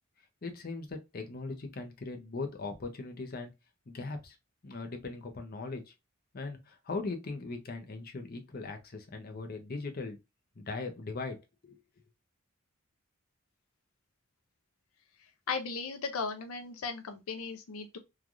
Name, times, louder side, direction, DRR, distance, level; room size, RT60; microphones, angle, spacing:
voice 1, 0.4-3.5 3.9-4.4 4.6-5.8 6.3-10.2 10.6-11.8, left 3 dB, 45° left, 0.6 m, -39 dB
voice 2, 15.5-18.0, left 4 dB, 85° left, 0.5 m, -36 dB
3.2 x 2.3 x 2.4 m
head